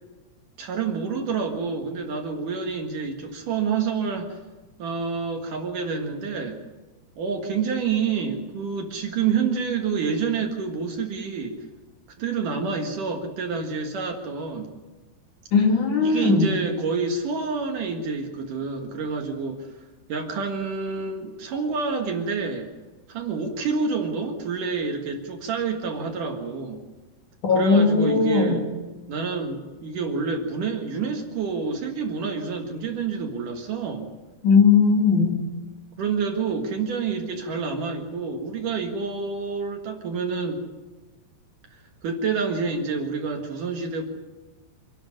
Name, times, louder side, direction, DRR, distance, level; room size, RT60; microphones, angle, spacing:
voice 1, 0.6-4.4 4.8-6.6 7.2-11.6 12.2-14.7 16.0-19.7 20.1-22.7 23.1-26.8 27.5-28.6 29.1-34.1 36.0-40.6 41.7-44.0, right 5 dB, 60° right, 3 dB, 2.9 m, -28 dB
voice 2, 15.5-16.5 27.4-28.5 34.4-35.3, left 5 dB, 50° left, 1 dB, 4.0 m, -18 dB
26.5 x 11.5 x 9.8 m, 1.2 s
omnidirectional pair, 4.7 m